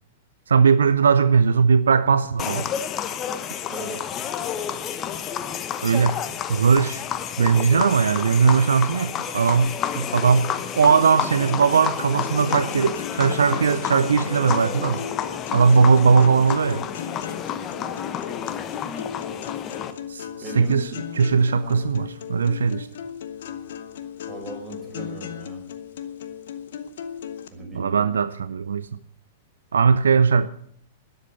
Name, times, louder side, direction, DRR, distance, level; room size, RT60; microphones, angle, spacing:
voice 1, 0.5-2.7 5.8-6.2 6.5-7.0 7.4-10.5 10.8-15.0 15.5-16.8 20.1-20.3 20.6-20.9 21.2-22.9 27.8-28.9 29.7-30.5, right 5 dB, 70° right, 0.5 m, -19 dB
sound 1, 2.4-19.9, left 9 dB, 30° left, 1.0 m, -30 dB
voice 2, 3.7-4.1 20.4-20.8 21.5-21.8 24.3-25.7 27.5-28.1, right 2 dB, 20° right, 5.3 m, -38 dB
sound 2, 11.5-27.5, left 8 dB, 60° left, 1.1 m, -36 dB
12.5 x 10.5 x 7.7 m
figure-of-eight pair, 100°, 0 cm